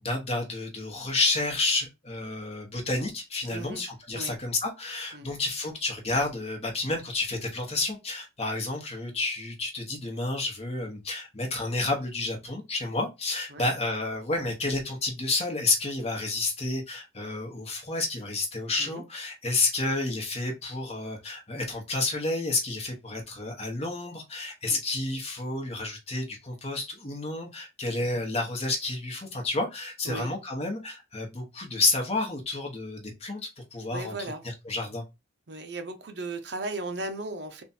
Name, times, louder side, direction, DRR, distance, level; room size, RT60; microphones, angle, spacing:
voice 1, 0.0-34.2 34.7-35.0, left 2 dB, 35° left, 1.0 m, -30 dB
voice 2, 3.5-3.9 4.1-4.3 5.1-5.3 13.5-13.7 18.8-19.0 24.6-24.8 30.0-30.3 33.9-34.4 35.5-37.6, right 2 dB, 60° right, 0.6 m, -36 dB
3.6 x 2.5 x 4.2 m
head